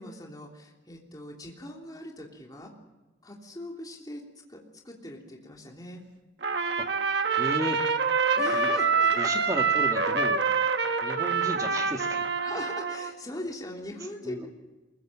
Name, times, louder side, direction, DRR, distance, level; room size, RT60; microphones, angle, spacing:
voice 1, 0.0-2.7 3.2-4.2 4.5-6.0 8.4-9.3 12.4-14.5, left 1 dB, 20° left, 0 dB, 3.3 m, -40 dB
Trumpet, 6.4-13.1, right 5 dB, 60° right, 1.3 m, -26 dB
voice 2, 7.4-7.9 8.5-8.7 9.1-10.5 11.0-12.3 14.2-14.5, right 1 dB, 20° right, 3 dB, 2.0 m, -34 dB
23.5 x 22.0 x 7.5 m, 1.1 s
head